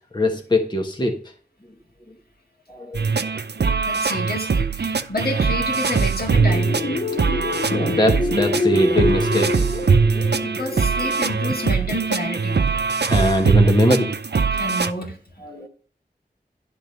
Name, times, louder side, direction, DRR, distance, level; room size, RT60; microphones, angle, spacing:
voice 1, 0.1-1.2 2.7-3.3 3.6-3.9 7.7-10.0 13.1-14.1 14.4-14.6 15.4-15.7, left 1 dB, 25° left, 2 dB, 1.2 m, -22 dB
sound 1, 2.9-14.9, right 5 dB, 85° right, 0.5 m, -21 dB
voice 2, 3.8-6.8 10.4-12.6 14.5-15.2, left 1 dB, 65° left, 1 dB, 2.0 m, -29 dB
sound 2, 6.3-12.9, left 3 dB, 45° left, 0.9 m, -27 dB
10.5 x 3.8 x 6.6 m, 0.42 s
wide cardioid pair, 45°, 17 cm